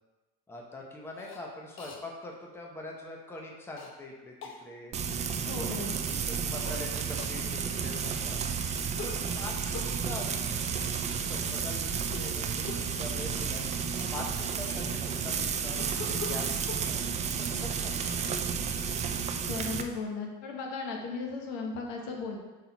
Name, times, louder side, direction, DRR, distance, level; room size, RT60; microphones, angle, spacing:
voice 1, 0.5-4.4 4.6-5.0 5.4-8.4 9.0-13.7 14.1-18.4, left 2 dB, 10° left, -1 dB, 0.8 m, -44 dB
Cough, 1.1-1.4 1.8-2.0 3.8-3.9 4.4-4.6 6.5-6.8 7.2-7.4 9.0-10.0 12.0-12.3 12.7-12.9 13.6-13.7 13.9-15.0 15.8-16.9, left 4 dB, 40° left, 1.0 m, -42 dB
Frying (food), 4.9-19.8, right 6 dB, 25° right, 0.4 m, -32 dB
voice 2, 5.5-6.0 19.5-22.4, left 4 dB, 75° left, 1 dB, 1.4 m, -36 dB
6.0 x 4.3 x 4.1 m, 1.2 s
cardioid pair, 130°, 31 cm